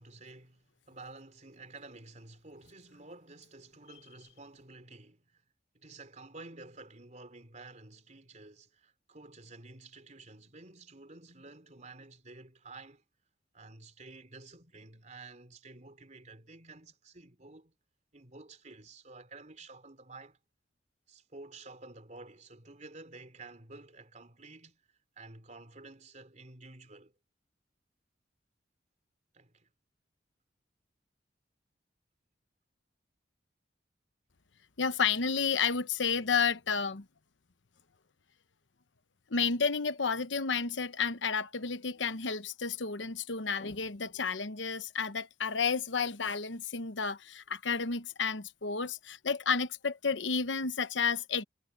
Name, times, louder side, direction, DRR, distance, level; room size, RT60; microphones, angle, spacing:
voice 1, 0.0-5.5 5.7-13.0 13.5-17.7 18.1-20.4 21.1-24.8 25.2-27.1 29.3-29.7, right 3 dB, 40° right, 3.9 m, -51 dB
voice 2, 34.8-37.0 39.3-51.4, left 5 dB, 85° left, 1.0 m, -31 dB
head